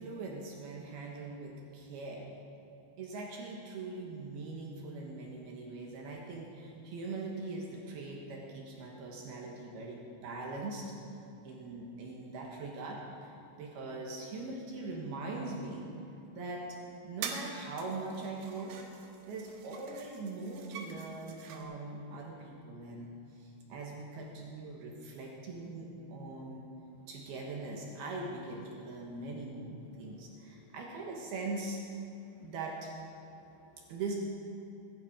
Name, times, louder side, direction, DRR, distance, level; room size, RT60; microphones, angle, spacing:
voice 1, 0.0-2.3 3.0-10.9 11.4-15.9 16.3-16.8 17.0-18.8 19.3-26.7 27.1-31.8 32.4-32.9 33.9-34.1, right 3 dB, 65° right, -1 dB, 3.0 m, -41 dB
sound 1, 16.6-16.7 17.2-17.5 17.8-21.6, right 6 dB, 85° right, 4.0 m, -45 dB
voice 2, 29.8-30.8 32.1-32.5 33.2-34.0, left 2 dB, 80° left, 2 dB, 4.1 m, -68 dB
20.5 x 12.0 x 5.2 m, 3.0 s
omnidirectional pair, 5.6 m